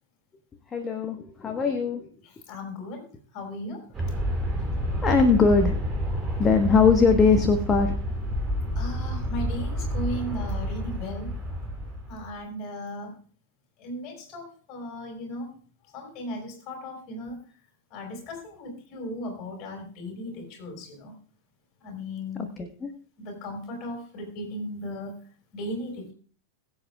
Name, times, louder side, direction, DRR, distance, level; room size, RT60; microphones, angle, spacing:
voice 1, 0.7-2.1 5.0-5.8 6.4-8.0 22.6-22.9, left 5 dB, 20° left, 5 dB, 1.3 m, -21 dB
voice 2, 2.2-4.1 8.8-11.4 12.1-13.2 13.8-15.6 15.9-17.4 17.9-21.2 21.8-22.6 23.2-25.2 25.5-26.1, left 1 dB, 35° left, 2 dB, 5.2 m, -37 dB
Aircraft, 3.9-12.3, equal, 20° right, 4.7 m, -29 dB
22.0 x 8.1 x 2.3 m, 0.42 s
figure-of-eight pair, 90°, 0 cm